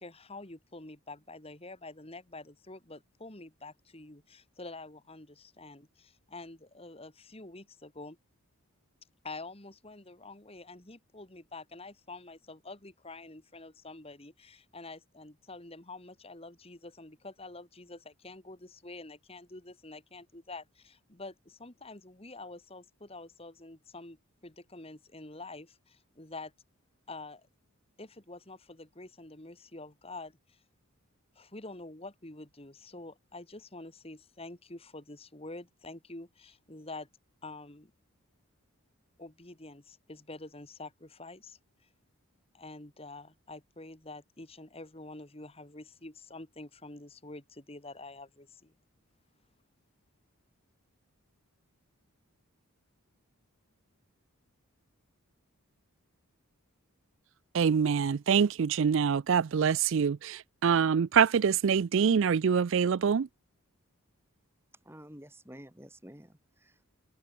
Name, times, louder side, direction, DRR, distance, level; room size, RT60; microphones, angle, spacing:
voice 1, 0.0-8.2 9.2-24.2 24.4-26.5 27.1-27.5 28.0-30.6 31.4-37.1 37.4-37.9 39.2-41.6 42.5-48.7, left 2 dB, 25° left, 2.0 m, -47 dB
voice 2, 57.5-63.3, right 7 dB, 60° right, 0.4 m, -25 dB
voice 3, 64.9-66.8, equal, 10° right, 5.4 m, -50 dB
head